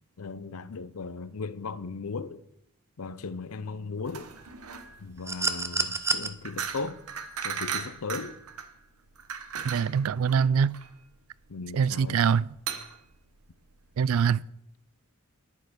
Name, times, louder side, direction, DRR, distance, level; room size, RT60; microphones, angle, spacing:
voice 1, 0.2-2.4 3.0-4.3 5.0-7.0 7.4-8.4 11.5-12.2, left 4 dB, 70° left, 0.6 m, -37 dB
sound 1, 4.0-14.0, right 7 dB, 85° right, 1.1 m, -38 dB
sound 2, 5.3-6.3 7.8-7.9, right 3 dB, 15° right, 0.7 m, -28 dB
voice 2, 9.6-10.7 11.7-12.4 14.0-14.4, right 7 dB, 65° right, 0.3 m, -23 dB
11.0 x 8.0 x 6.1 m
head